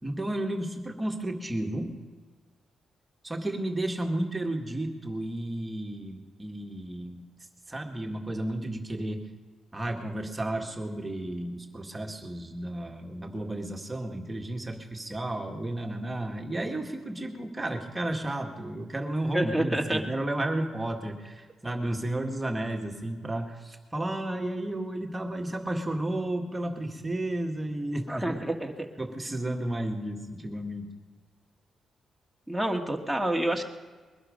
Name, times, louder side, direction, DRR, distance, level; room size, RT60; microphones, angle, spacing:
voice 1, 0.0-1.9 3.2-7.2 7.7-9.2 9.7-28.4 29.0-30.9, right 1 dB, 15° right, 2 dB, 2.0 m, -32 dB
voice 2, 19.3-20.0 28.1-28.9 32.5-33.6, right 1 dB, ahead, 1 dB, 1.9 m, -28 dB
22.0 x 12.0 x 5.2 m, 1.4 s
cardioid pair, 100°, 0 cm